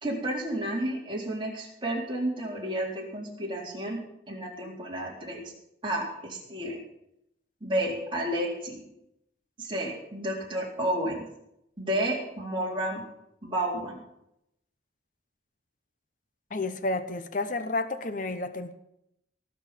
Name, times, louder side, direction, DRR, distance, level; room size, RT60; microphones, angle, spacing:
voice 1, 0.0-5.5 5.8-6.8 7.6-8.8 9.6-11.3 11.8-13.0 13.4-14.0, right 1 dB, 25° right, -3 dB, 4.0 m, -31 dB
voice 2, 16.5-18.7, left 2 dB, 45° left, 10 dB, 0.9 m, -31 dB
18.5 x 6.5 x 8.9 m, 0.80 s
head